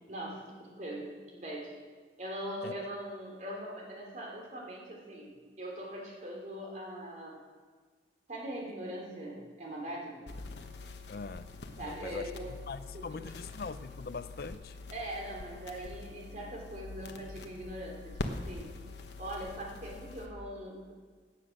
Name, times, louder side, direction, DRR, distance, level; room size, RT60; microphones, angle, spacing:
voice 1, 0.0-1.8 2.2-7.4 8.3-10.3 11.8-12.5 12.9-13.1 14.9-18.7 19.2-20.9, right 1 dB, 40° right, 3.3 m, -41 dB
sound 1, 10.3-20.3, left 2 dB, 70° left, 1.1 m, -44 dB
voice 2, 11.1-11.5 11.8-12.3 12.7-14.8, left 4 dB, 55° left, 0.5 m, -42 dB
17.5 x 8.4 x 6.4 m
head